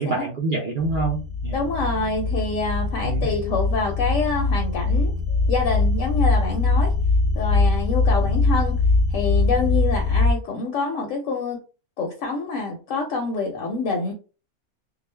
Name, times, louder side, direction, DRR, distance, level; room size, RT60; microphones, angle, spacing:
voice 1, 0.0-1.6 3.0-3.3 8.2-8.4, right 3 dB, 70° right, 0 dB, 0.4 m, -27 dB
sound 1, 0.8-10.3, left 3 dB, 50° right, 0.8 m, -22 dB
voice 2, 1.5-5.1 5.5-6.9 7.3-8.8 9.1-11.6 12.0-14.1, left 4 dB, 70° left, 2 dB, 0.9 m, -26 dB
2.4 x 2.0 x 3.2 m, 0.34 s
omnidirectional pair, 1.5 m